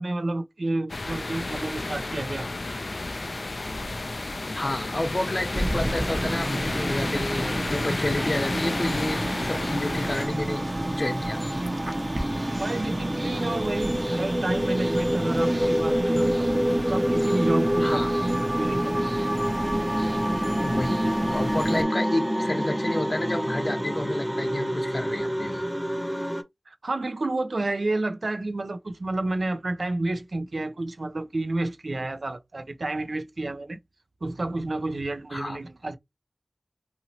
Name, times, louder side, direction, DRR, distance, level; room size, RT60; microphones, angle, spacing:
voice 1, 0.0-2.5 12.6-16.3 16.9-19.2 26.7-33.8 34.2-36.0, right 2 dB, 85° right, 0.5 m, -30 dB
sound 1, 0.9-10.3, left 2 dB, 75° left, 0.4 m, -31 dB
voice 2, 4.5-11.4 17.8-18.1 20.6-21.0 21.3-25.6 35.3-35.6, left 1 dB, 50° left, 0.8 m, -30 dB
sound 2, 5.5-21.8, right 1 dB, 35° right, 0.7 m, -31 dB
sound 3, 8.2-26.4, equal, 5° right, 0.5 m, -28 dB
2.9 x 2.8 x 2.8 m
wide cardioid pair, 60°, 0 cm